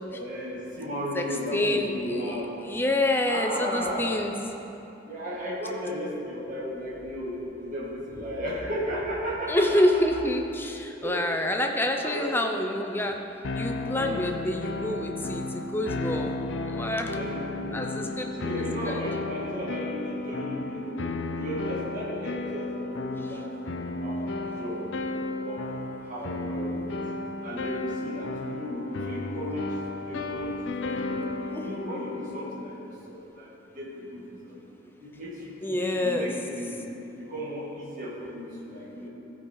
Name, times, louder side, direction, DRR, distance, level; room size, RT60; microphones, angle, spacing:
voice 1, 0.1-2.5 3.3-4.2 5.1-10.0 11.0-11.3 12.0-12.3 17.1-23.5 24.0-25.0 25.4-25.7 26.0-31.3 31.6-34.6 35.0-36.8 37.2-39.1, equal, 45° right, -6 dB, 2.2 m, -35 dB
voice 2, 1.5-2.4 2.6-4.3 9.5-13.2 13.5-16.4 16.7-17.2 17.7-18.4 18.8-19.0 31.5-31.7 35.6-36.3, left 1 dB, 10° left, 3 dB, 0.6 m, -27 dB
sound 1, 13.4-32.7, left 2 dB, 80° left, 0.5 m, -33 dB
14.5 x 5.3 x 4.7 m, 2.9 s
head